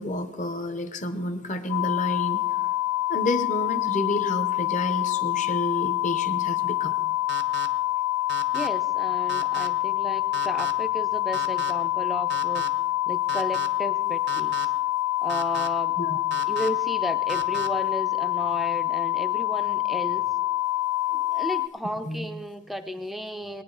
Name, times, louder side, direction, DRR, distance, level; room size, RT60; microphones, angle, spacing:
voice 1, 0.0-2.4 3.1-6.9 16.0-16.2 22.1-22.2, left 1 dB, 35° left, 9 dB, 0.9 m, -30 dB
sound 1, 1.7-21.7, left 16 dB, 70° left, 0.8 m, -26 dB
sound 2, 7.3-7.7 8.3-8.7 9.3-9.7 10.3-10.7 11.3-11.7 12.3-12.7 13.3-13.7 14.3-14.7 15.3-15.7 16.3-16.7 17.3-17.7, right 7 dB, 50° right, 0.7 m, -35 dB
voice 2, 8.5-12.7 13.1-14.7 15.2-16.0 16.5-20.3 21.1-23.6, equal, ahead, 7 dB, 0.5 m, -34 dB
21.0 x 9.6 x 3.9 m, 1.1 s
head